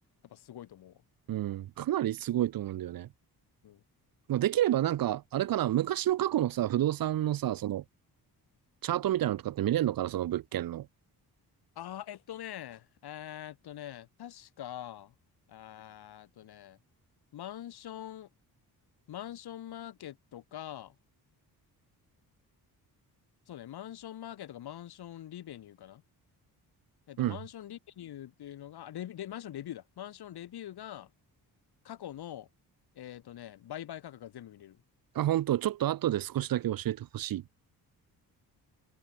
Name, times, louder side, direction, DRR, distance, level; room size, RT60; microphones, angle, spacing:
voice 1, 0.2-1.0 3.6-3.8 11.8-15.1 15.5-16.8 17.3-18.3 19.1-21.0 23.5-26.0 27.1-31.1 31.8-32.5 32.9-34.8, left 11 dB, 85° left, 7.5 m, -44 dB
voice 2, 1.3-3.1 4.3-7.8 8.8-10.9 27.2-27.4 35.1-37.4, right 13 dB, 65° right, 0.8 m, -29 dB
wide cardioid pair, 155°, 38 cm